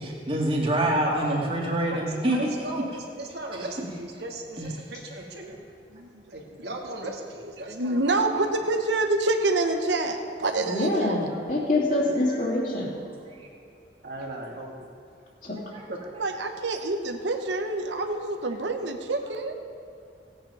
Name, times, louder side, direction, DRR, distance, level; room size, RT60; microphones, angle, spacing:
voice 1, 0.0-2.5 4.6-4.7 11.3-11.4 13.3-13.4 15.7-15.8 18.0-18.1, right 1 dB, 30° right, -2 dB, 2.1 m, -26 dB
voice 2, 1.0-1.5 1.9-2.9 3.2-5.6 6.3-8.5 14.0-14.9 15.9-16.0, right 2 dB, 65° right, 0 dB, 1.8 m, -37 dB
voice 3, 7.7-11.2 16.2-19.5, right 2 dB, 85° right, 4 dB, 1.1 m, -27 dB
voice 4, 10.6-12.9 15.4-15.6, left 2 dB, 45° left, -3 dB, 2.7 m, -25 dB
16.0 x 8.8 x 5.6 m, 2.6 s
head